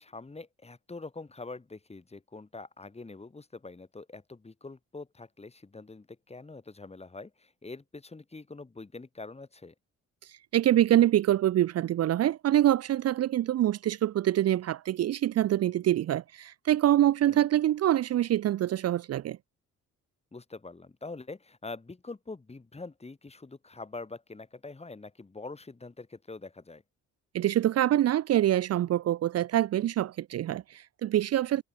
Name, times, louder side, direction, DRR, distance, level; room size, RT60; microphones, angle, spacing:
voice 1, 0.0-9.7 17.3-17.4 20.3-26.8, left 3 dB, 20° left, 3.5 m, -44 dB
voice 2, 10.5-19.4 27.3-31.6, right 12 dB, 55° right, 0.6 m, -25 dB
cardioid pair, 90°, 30 cm